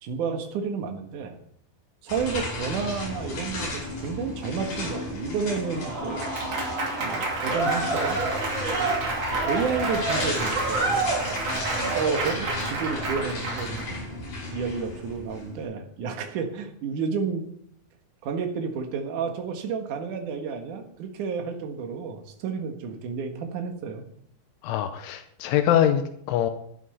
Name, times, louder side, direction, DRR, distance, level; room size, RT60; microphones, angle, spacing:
voice 1, 0.0-1.4 2.0-6.2 7.0-8.2 9.3-10.9 11.9-14.0 14.5-17.4 18.2-24.0, right 5 dB, 60° right, 4 dB, 2.2 m, -31 dB
sound 1, 2.1-15.6, left 2 dB, 40° left, 6.6 m, -34 dB
Applause / Crowd, 5.7-13.8, right 3 dB, 40° right, 2.9 m, -28 dB
voice 2, 24.6-26.5, left 10 dB, 85° left, 8 dB, 3.3 m, -23 dB
11.0 x 11.0 x 5.6 m, 0.67 s
omnidirectional pair, 5.5 m